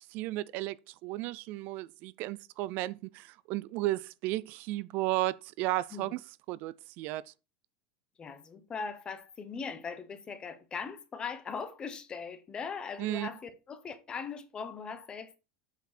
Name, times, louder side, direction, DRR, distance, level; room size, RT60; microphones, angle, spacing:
voice 1, 0.0-6.2 6.5-7.3 13.0-13.3, right 17 dB, 50° right, 0.3 m, -34 dB
voice 2, 8.2-15.4, left 5 dB, 20° left, 1.0 m, -40 dB
8.0 x 4.8 x 4.2 m
supercardioid pair, 140°, 4 cm